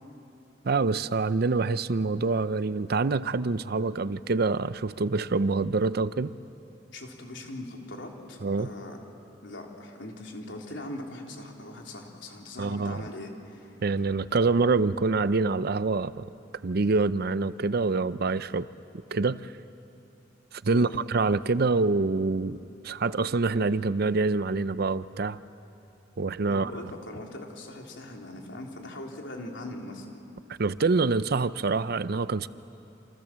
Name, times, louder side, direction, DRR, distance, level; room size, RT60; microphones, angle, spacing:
voice 1, 0.6-6.4 8.4-8.7 12.6-13.1 13.8-16.2 16.6-18.7 19.1-19.5 20.5-22.6 22.8-25.4 26.2-26.7 30.6-32.5, right 3 dB, 55° right, 0.6 m, -26 dB
voice 2, 6.9-9.0 9.4-13.7 20.7-21.0 26.5-30.1, left 1 dB, 80° left, 3.7 m, -41 dB
28.0 x 27.5 x 7.5 m
head